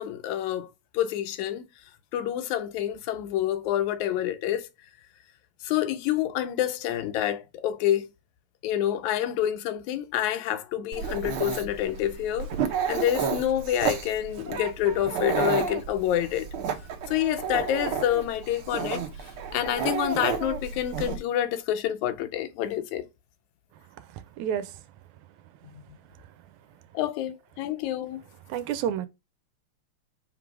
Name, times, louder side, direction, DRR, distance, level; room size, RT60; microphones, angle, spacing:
voice 1, 0.0-1.7 2.1-4.7 5.6-8.1 8.6-12.5 12.9-16.5 17.1-19.0 19.5-23.1 26.9-28.2, left 11 dB, 80° left, 2.2 m, -27 dB
Dog, 10.9-21.2, right 7 dB, 60° right, 1.4 m, -31 dB
voice 2, 24.0-24.8 26.2-26.3 28.5-29.1, right 9 dB, 85° right, 2.0 m, -31 dB
5.2 x 3.9 x 4.7 m
omnidirectional pair, 3.3 m